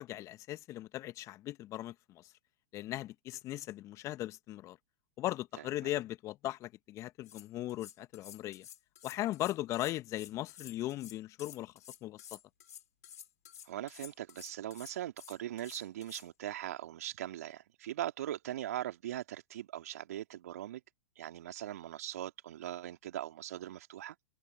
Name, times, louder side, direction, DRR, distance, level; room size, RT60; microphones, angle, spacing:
voice 1, 0.0-2.3 2.7-4.8 5.2-8.7 9.0-11.7 12.0-12.4, left 15 dB, 35° left, 1.5 m, -38 dB
Knife Sharpening, 7.0-7.1 7.2-16.3, left 10 dB, 70° left, 4.6 m, -52 dB
voice 2, 13.6-20.8 21.2-24.2, right 12 dB, 65° right, 2.5 m, -40 dB
hypercardioid pair, 100°, 9 cm